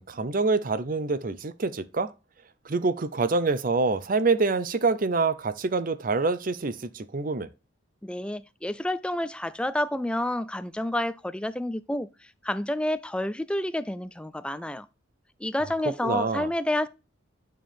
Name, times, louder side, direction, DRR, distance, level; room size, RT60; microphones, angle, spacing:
voice 1, 0.0-2.1 2.7-7.5 16.0-16.5, right 3 dB, 45° right, 0.6 m, -26 dB
voice 2, 8.0-14.9 15.4-16.9, left 1 dB, 5° left, 0.3 m, -29 dB
9.0 x 4.6 x 3.5 m
head